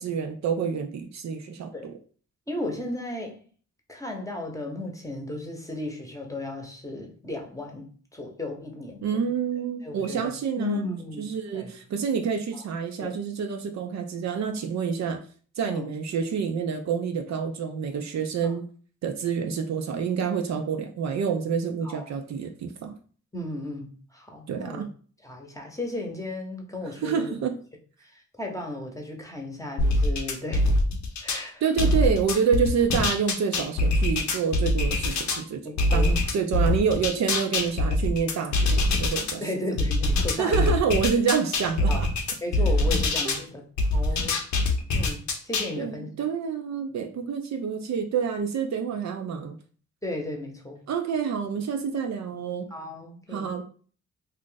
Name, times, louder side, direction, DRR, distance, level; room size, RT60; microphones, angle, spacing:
voice 1, 0.0-1.9 9.0-10.8 11.2-15.2 15.6-18.6 19.0-22.9 24.5-24.9 27.0-27.6 31.6-35.6 35.9-39.4 40.4-42.1 43.2-43.4 45.8-49.5 50.9-52.7 53.3-53.6, right 6 dB, 60° right, 5 dB, 0.5 m, -27 dB
voice 2, 2.5-3.4 3.9-9.3 9.8-10.3 10.6-11.7 12.5-12.7 13.0-13.1 15.6-15.9 18.4-18.6 21.8-22.1 23.3-24.9 25.2-27.3 28.0-30.7 31.2-31.9 35.6-36.2 39.4-40.7 41.9-42.0 42.4-43.6 43.9-44.4 44.9-46.1 50.0-50.8 52.7-53.6, left 2 dB, 10° left, 1 dB, 0.9 m, -35 dB
sound 1, 29.8-31.4 31.8-35.4 35.8-39.3 39.8-43.4 43.8-45.7, left 2 dB, 70° left, 0.7 m, -24 dB
2.5 x 2.5 x 3.8 m, 0.43 s
cardioid pair, 70°, 30 cm